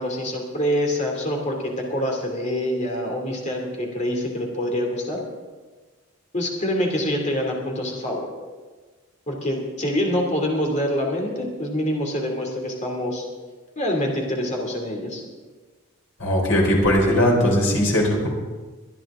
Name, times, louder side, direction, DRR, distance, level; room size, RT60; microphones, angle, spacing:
voice 1, 0.0-5.2 6.3-8.3 9.3-13.2 13.8-15.2, equal, 35° left, 0 dB, 2.8 m, -25 dB
voice 2, 16.2-18.3, equal, 85° left, -1 dB, 4.1 m, -19 dB
23.5 x 10.5 x 3.8 m, 1.3 s
head